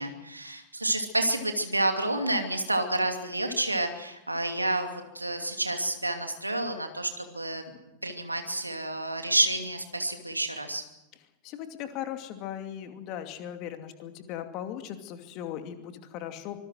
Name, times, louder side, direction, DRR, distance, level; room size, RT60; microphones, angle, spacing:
voice 1, 0.0-7.6 8.0-10.8, right 1 dB, 85° right, 6 dB, 2.6 m, -29 dB
voice 2, 11.4-16.6, left 10 dB, 40° left, 6 dB, 2.6 m, -38 dB
25.0 x 21.0 x 6.3 m, 0.93 s
figure-of-eight pair, 90°, 0 cm